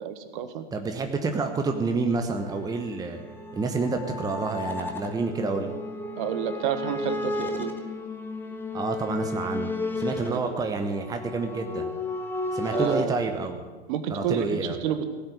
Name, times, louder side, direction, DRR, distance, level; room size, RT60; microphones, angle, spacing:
voice 1, 0.0-0.6 6.2-7.7 10.2-10.4 12.7-13.1 13.9-15.0, right 9 dB, 45° right, 10 dB, 1.6 m, -29 dB
voice 2, 0.7-3.2 3.5-5.7 8.7-11.9 12.5-13.7 14.1-14.8, right 4 dB, 10° right, 5 dB, 1.1 m, -29 dB
sound 1, 2.4-13.0, left 2 dB, 5° left, 1.6 m, -33 dB
17.0 x 7.9 x 10.0 m, 1.4 s
figure-of-eight pair, 105°, 34 cm